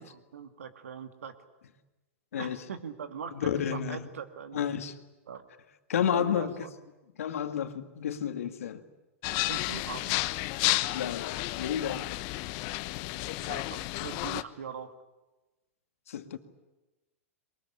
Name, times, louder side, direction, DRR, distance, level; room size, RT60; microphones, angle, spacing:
voice 1, 0.1-1.3 2.4-4.7 5.3-5.4 6.0-6.7 9.3-10.2 13.5-15.0, right 7 dB, 85° right, 2.3 m, -41 dB
voice 2, 3.3-4.1 4.5-4.9 5.9-6.5 7.2-8.8 10.9-12.0 16.1-16.4, left 9 dB, 80° left, 2.0 m, -31 dB
sound 1, 9.2-14.4, left 19 dB, 50° left, 1.0 m, -32 dB
22.5 x 21.5 x 9.9 m
hypercardioid pair, 115°, 7 cm